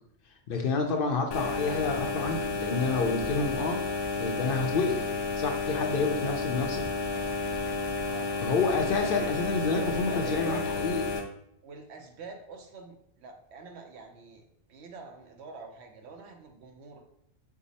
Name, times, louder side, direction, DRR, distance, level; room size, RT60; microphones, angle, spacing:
voice 1, 0.5-3.8 4.2-5.1 5.4-6.9 8.4-11.0, left 4 dB, 60° left, 3 dB, 0.7 m, -29 dB
sound 1, 1.3-11.2, left 4 dB, 85° left, 1.0 m, -31 dB
voice 2, 9.8-10.6 11.6-17.0, right 4 dB, 70° right, 4 dB, 0.9 m, -46 dB
4.8 x 2.0 x 4.0 m, 0.73 s
omnidirectional pair, 1.2 m